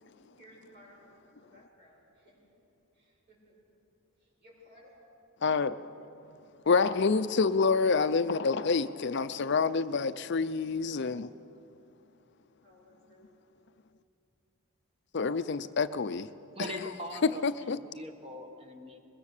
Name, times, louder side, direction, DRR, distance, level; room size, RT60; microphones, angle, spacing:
voice 1, 0.0-2.6 2.9-3.5 4.4-4.9 12.6-13.6, equal, 50° right, -3 dB, 7.6 m, -59 dB
voice 2, 5.4-5.9 6.7-11.3 15.1-16.3 17.4-17.8, left 4 dB, 50° left, 13 dB, 0.5 m, -27 dB
voice 3, 16.5-19.0, left 1 dB, 25° right, 5 dB, 1.4 m, -41 dB
23.5 x 21.5 x 6.6 m, 2.8 s
head